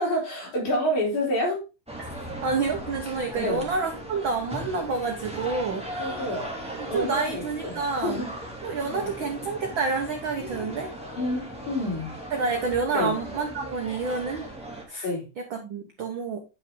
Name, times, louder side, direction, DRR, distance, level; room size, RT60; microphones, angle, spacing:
voice 1, 0.0-1.7 3.4-3.7 6.0-6.6 6.9-8.3 8.8-9.1 11.2-12.1 12.9-13.2 15.0-15.3, left 1 dB, 65° left, -2 dB, 5.2 m, -28 dB
sound 1, 1.9-14.8, right 1 dB, ahead, 1.7 m, -38 dB
voice 2, 2.4-5.9 6.9-8.2 8.6-10.9 12.3-14.4 14.9-15.1 15.4-16.4, right 4 dB, 75° right, 4 dB, 1.1 m, -28 dB
9.2 x 6.1 x 3.7 m, 0.28 s
omnidirectional pair, 3.8 m